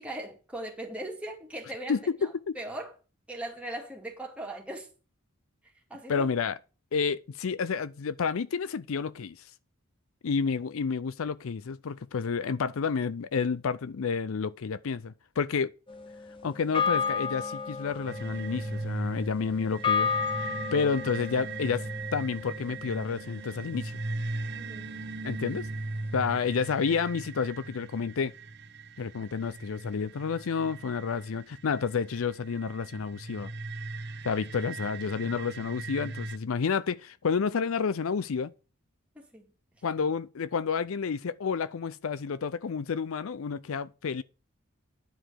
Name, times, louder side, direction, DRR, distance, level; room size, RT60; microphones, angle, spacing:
voice 1, 0.0-2.9 3.3-4.9 5.9-6.3 24.6-24.9 39.2-39.5, right 1 dB, 5° right, 2.2 m, -39 dB
voice 2, 1.9-2.6 6.1-6.6 6.9-9.4 10.2-15.7 16.4-20.1 20.4-21.9 22.1-24.0 25.2-25.7 26.1-28.3 29.0-33.5 34.2-38.5 39.8-44.2, left 5 dB, 75° left, 0.5 m, -30 dB
sound 1, 15.9-24.4, left 6 dB, 25° left, 0.8 m, -33 dB
sound 2, 18.1-36.4, right 3 dB, 50° right, 1.0 m, -39 dB
10.5 x 4.9 x 7.4 m
head